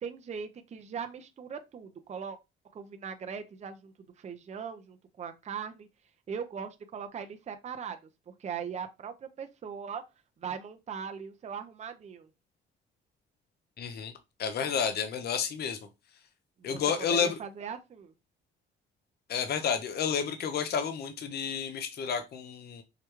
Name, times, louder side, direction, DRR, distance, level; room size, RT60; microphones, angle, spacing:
voice 1, 0.0-2.4 2.7-5.9 6.3-8.0 8.3-10.0 10.4-12.3 16.6-16.8 17.2-18.1, right 7 dB, 35° right, 0.5 m, -40 dB
voice 2, 13.8-14.1 14.4-15.8 16.6-17.4 19.3-22.8, left 7 dB, 55° left, 0.6 m, -30 dB
4.8 x 2.2 x 2.9 m
cardioid pair, 90°, 20 cm